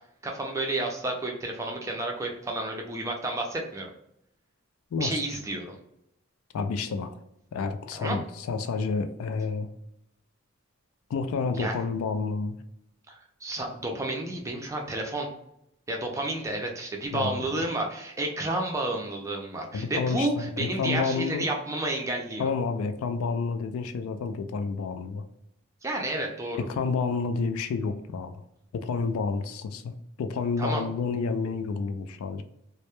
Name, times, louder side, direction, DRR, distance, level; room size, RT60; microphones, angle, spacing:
voice 1, 0.2-3.9 5.0-5.8 8.0-8.2 11.5-11.7 13.1-15.3 15.9-22.5 25.8-26.7 30.6-30.9, right 2 dB, 15° right, 1 dB, 0.3 m, -31 dB
voice 2, 4.9-5.2 6.5-7.1 7.5-9.7 11.1-12.6 17.1-17.5 19.7-21.5 22.4-25.2 26.6-28.4 28.7-32.4, left 4 dB, 85° left, 10 dB, 0.3 m, -29 dB
2.1 x 2.0 x 2.9 m, 0.79 s
head